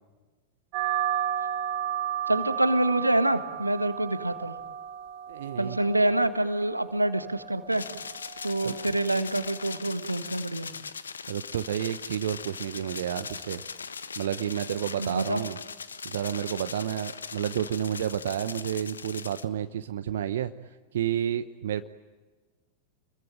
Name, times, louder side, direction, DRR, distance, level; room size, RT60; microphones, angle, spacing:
sound 1, 0.7-9.8, right 10 dB, 40° right, 1.9 m, -34 dB
voice 1, 2.3-4.5 5.6-7.8 8.4-10.7 15.0-15.4, right 1 dB, 85° right, 10 dB, 1.6 m, -26 dB
voice 2, 5.3-5.8 8.6-8.9 11.3-13.6 14.2-15.6 16.0-20.5 20.9-21.9, right 10 dB, 60° right, 10 dB, 1.0 m, -30 dB
sound 2, 7.7-19.4, left 5 dB, 75° left, 1.3 m, -40 dB
29.5 x 22.5 x 8.9 m, 1.3 s
figure-of-eight pair, 90°, 0 cm